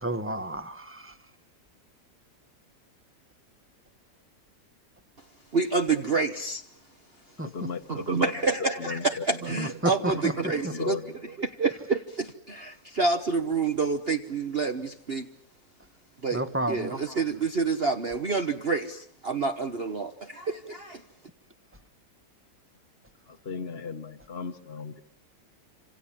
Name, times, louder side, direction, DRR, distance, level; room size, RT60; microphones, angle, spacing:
voice 1, 0.0-1.1 7.4-7.5 9.6-10.7 16.3-16.9, right 1 dB, 10° right, 12 dB, 1.1 m, -31 dB
voice 2, 5.5-6.6 7.9-11.0 11.2-15.3 16.2-21.0, right 4 dB, 35° right, 6 dB, 1.3 m, -28 dB
voice 3, 7.4-8.1 8.6-9.2 10.1-10.2 10.4-11.2 23.3-25.0, left 5 dB, 40° left, 6 dB, 1.3 m, -36 dB
28.0 x 27.0 x 7.4 m, 0.66 s
omnidirectional pair, 1.9 m